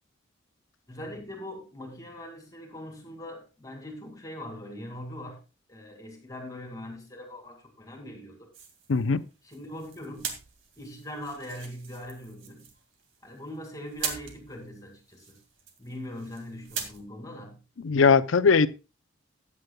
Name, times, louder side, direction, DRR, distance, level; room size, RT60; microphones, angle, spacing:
voice 1, 0.9-5.4 5.7-8.5 9.4-10.4 10.8-12.7 13.2-15.4 15.8-17.6, left 1 dB, 15° left, 2.2 m, -41 dB
sound 1, 8.5-17.0, right 6 dB, 80° right, 2.1 m, -41 dB
voice 2, 8.9-9.2 17.8-18.7, left 5 dB, 80° left, 0.6 m, -20 dB
14.5 x 9.6 x 2.3 m
head